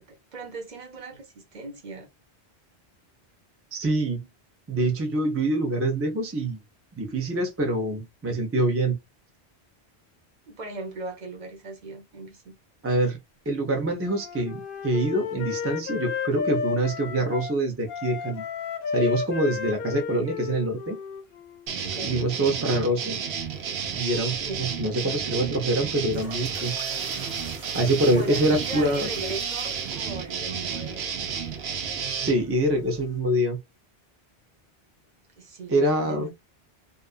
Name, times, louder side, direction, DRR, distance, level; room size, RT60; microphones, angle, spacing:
voice 1, 0.0-2.1 10.5-12.5 21.8-22.2 24.3-25.6 28.0-31.1 35.4-36.3, right 3 dB, 45° right, 0.9 m, -39 dB
voice 2, 3.7-4.3 4.7-6.6 7.0-9.0 12.8-13.2 13.5-18.4 18.9-21.0 22.0-23.2 23.9-26.7 27.7-29.1 32.2-33.6 35.7-36.3, right 1 dB, 20° right, 0.3 m, -25 dB
Wind instrument woodwind instrument, 14.0-17.5 17.9-21.7, left 6 dB, 65° left, 0.7 m, -32 dB
sound 1, 21.7-32.3, right 7 dB, 90° right, 0.9 m, -32 dB
sound 2, 23.5-33.2, right 1 dB, 75° right, 1.2 m, -47 dB
2.5 x 2.4 x 2.3 m
omnidirectional pair, 1.1 m